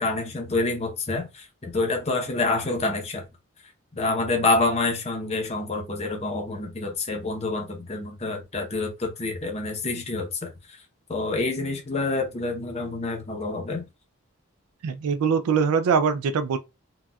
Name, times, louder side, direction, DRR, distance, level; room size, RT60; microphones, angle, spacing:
voice 1, 0.0-3.2 4.0-10.5 11.1-13.8, left 3 dB, 30° left, 0.7 m, -27 dB
voice 2, 14.8-16.6, right 6 dB, 85° right, 0.4 m, -22 dB
4.0 x 2.3 x 2.3 m
head